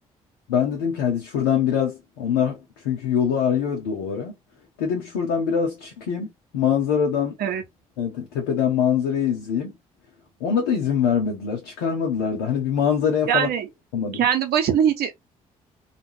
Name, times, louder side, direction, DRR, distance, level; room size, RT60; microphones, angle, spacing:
voice 1, 0.5-4.3 4.8-7.4 8.0-9.7 10.4-13.5 13.9-14.3, left 7 dB, 75° left, 0.8 m, -23 dB
voice 2, 13.3-13.7 14.1-15.1, right 9 dB, 60° right, 0.8 m, -21 dB
2.4 x 2.2 x 3.1 m
figure-of-eight pair, 45°, 18 cm